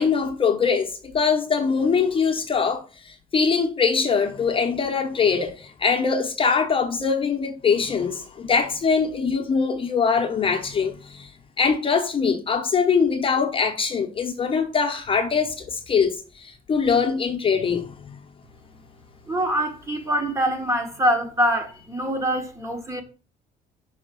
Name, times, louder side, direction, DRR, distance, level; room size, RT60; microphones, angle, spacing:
voice 1, 0.0-11.3 11.6-18.1, left 5 dB, 30° left, 0.9 m, -23 dB
voice 2, 19.2-23.0, equal, 15° right, 1.3 m, -24 dB
5.7 x 3.6 x 5.2 m
cardioid pair, 110°, 17 cm